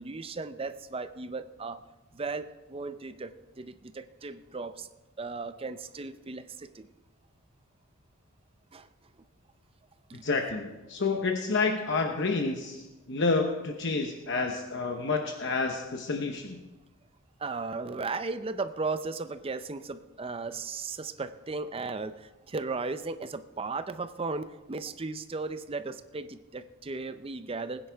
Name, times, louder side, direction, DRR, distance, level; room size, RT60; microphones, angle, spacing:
voice 1, 0.0-1.8 2.1-4.9 5.2-6.9 8.7-8.9 10.1-10.2 17.4-27.9, right 3 dB, 25° right, 11 dB, 0.5 m, -36 dB
voice 2, 10.2-16.6, left 3 dB, 55° left, 3 dB, 0.9 m, -29 dB
20.0 x 9.9 x 3.5 m, 1.1 s
head